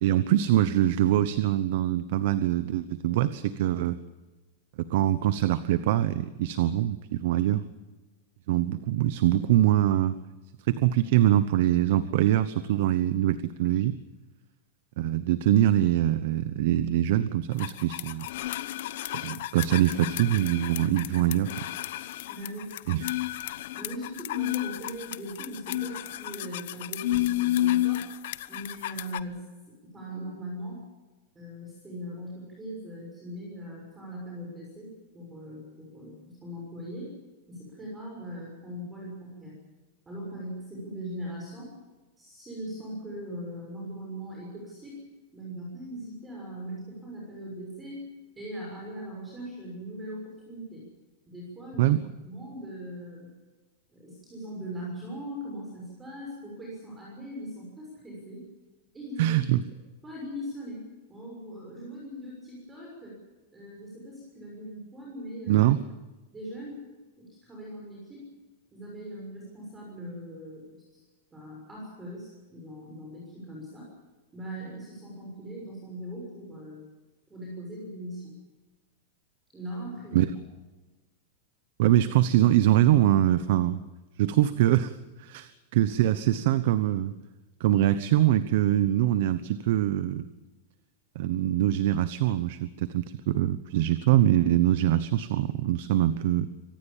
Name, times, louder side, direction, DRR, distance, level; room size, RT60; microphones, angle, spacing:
voice 1, 0.0-4.0 4.8-7.6 8.5-10.2 10.7-14.0 15.0-18.3 19.1-21.5 22.9-23.0 51.8-52.0 59.2-59.6 65.5-65.8 80.1-80.3 81.8-83.8 84.2-87.1 87.6-90.2 91.1-96.5, right 13 dB, 50° right, 14 dB, 0.9 m, -23 dB
sound 1, 17.6-29.2, left 14 dB, 55° left, 1.0 m, -31 dB
voice 2, 22.3-22.7 23.7-28.1 28.5-29.5 29.9-30.8 31.3-37.1 37.5-39.6 40.0-41.7 42.2-45.0 45.3-48.0 48.4-50.8 51.3-52.0 52.2-53.3 53.9-58.4 58.9-59.4 60.0-60.8 61.1-63.2 63.5-65.7 66.3-66.9 67.2-68.2 68.7-71.0 71.3-73.9 74.3-76.9 77.3-78.3 79.5-80.3, equal, 10° right, -3 dB, 6.4 m, -40 dB
25.5 x 18.5 x 7.3 m, 1.2 s
supercardioid pair, 175°, 0 cm